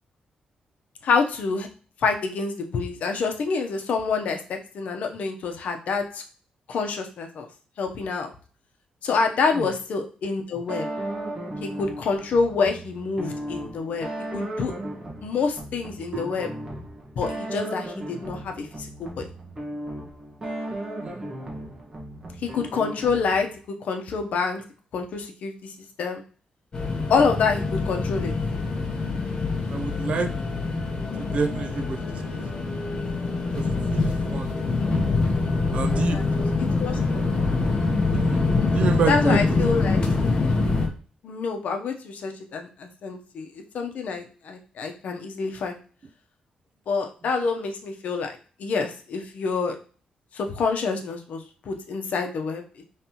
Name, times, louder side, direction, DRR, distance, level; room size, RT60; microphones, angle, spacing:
voice 1, 1.0-1.7 2.0-6.2 6.7-7.5 7.8-8.3 9.0-10.9 11.6-14.1 14.3-14.7 15.2-16.5 17.2-19.2 22.4-23.5 23.8-24.6 24.9-26.2 27.1-28.3 36.0-37.2 39.1-40.0 41.2-45.8 46.9-48.3 48.6-49.8 50.3-52.6, left 4 dB, 70° left, 4 dB, 0.8 m, -27 dB
sound 1, 10.7-23.6, right 1 dB, 25° right, 1.3 m, -35 dB
sound 2, 26.7-40.9, left 3 dB, 35° left, 1.0 m, -25 dB
voice 2, 29.7-30.3 31.2-32.0 32.3-32.4 33.5-34.6 35.7-36.2 38.1-38.4 38.7-39.7, right 4 dB, 55° right, 8 dB, 0.6 m, -28 dB
5.3 x 3.2 x 2.9 m, 0.40 s
wide cardioid pair, 140°, 3 cm